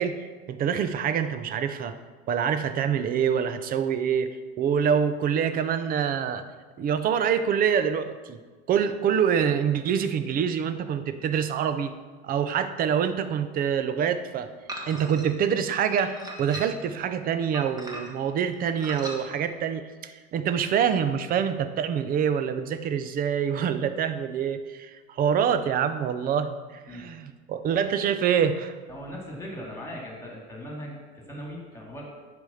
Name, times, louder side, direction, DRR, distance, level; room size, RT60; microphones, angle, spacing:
voice 1, 0.0-2.0 2.3-4.3 4.6-6.4 6.8-8.4 8.7-11.9 12.2-14.5 14.9-28.7, right 8 dB, 25° right, 11 dB, 0.6 m, -26 dB
sound 1, 14.7-15.3 16.0-16.9 17.5-18.3 18.8-19.2, right 1 dB, 10° right, 1.3 m, -38 dB
voice 2, 28.9-32.0, equal, 10° left, -2 dB, 2.4 m, -39 dB
9.5 x 5.1 x 6.9 m, 1.4 s
supercardioid pair, 135°, 32 cm